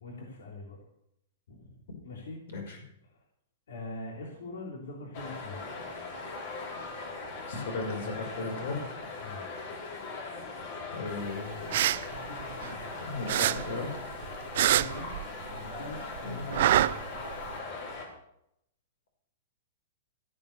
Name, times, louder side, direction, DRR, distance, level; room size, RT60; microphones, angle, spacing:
voice 1, 0.0-0.8 1.5-2.4 3.0-3.2 3.7-5.6 9.2-9.6 12.1-12.9 14.5-15.2 15.5-16.0 16.4-17.0, left 2 dB, 85° left, -1 dB, 3.2 m, -43 dB
sound 1, 5.1-18.1, left 3 dB, 45° left, 4.2 m, -40 dB
voice 2, 7.5-8.8 10.9-11.8 13.0-13.9 16.2-16.4, left 3 dB, 65° left, 3 dB, 5.6 m, -36 dB
sound 2, 11.5-12.9 13.3-15.7 15.9-17.5, right 13 dB, 55° right, 0.4 m, -26 dB
14.5 x 9.2 x 6.6 m, 0.76 s
hypercardioid pair, 165°, 0 cm